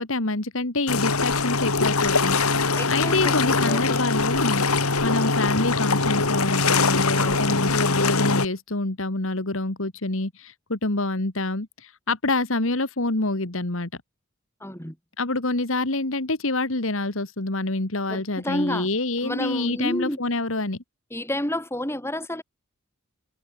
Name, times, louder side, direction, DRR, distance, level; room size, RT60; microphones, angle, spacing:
voice 1, 0.0-4.7 5.0-13.9 15.2-20.8, left 2 dB, 65° left, 2.1 m, -27 dB
sound 1, 0.9-8.5, left 3 dB, 90° left, 3.6 m, -22 dB
voice 2, 2.8-4.1 7.1-7.6 14.6-15.0 18.1-18.9 19.2-20.2 21.1-22.4, left 1 dB, 10° left, 5.8 m, -30 dB
head